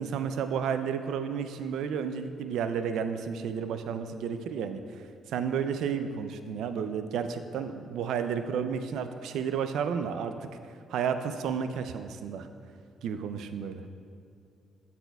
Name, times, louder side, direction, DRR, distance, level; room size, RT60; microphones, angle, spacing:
voice 1, 0.0-4.8 5.3-10.3 10.9-12.5 13.0-13.8, right 7 dB, 80° right, 9 dB, 0.3 m, -32 dB
12.0 x 4.2 x 2.3 m, 2.4 s
cardioid pair, 90°, 0 cm